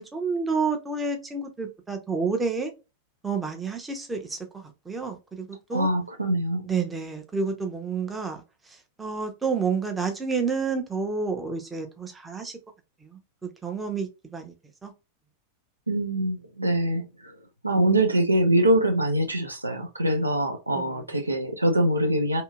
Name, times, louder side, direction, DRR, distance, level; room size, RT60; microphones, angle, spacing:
voice 1, 0.0-2.7 3.2-5.9 6.6-8.4 9.0-12.5 13.0-14.5 14.8-14.9 20.7-21.0, right 4 dB, 10° right, 0.7 m, -29 dB
voice 2, 5.7-6.7 15.9-22.4, right 1 dB, 85° right, 0.5 m, -24 dB
2.8 x 2.7 x 2.3 m
figure-of-eight pair, 90°, 0 cm